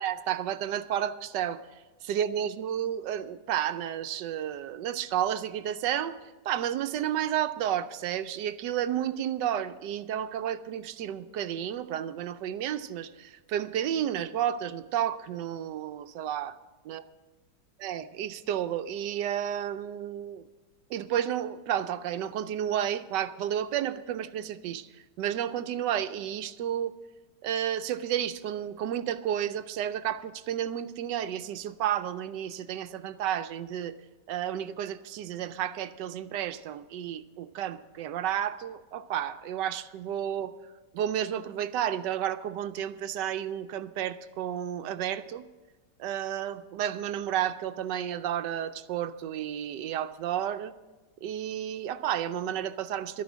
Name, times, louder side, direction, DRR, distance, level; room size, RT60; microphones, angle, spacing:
voice 1, 0.0-1.6 2.0-6.2 6.4-16.6 16.9-17.0 17.8-20.4 20.9-24.9 25.2-26.9 27.4-33.9 34.3-40.5 40.9-45.5 46.0-50.7 51.2-53.2, right 10 dB, 80° right, 12 dB, 1.2 m, -31 dB
12.5 x 10.0 x 6.1 m, 1.2 s
omnidirectional pair, 1.9 m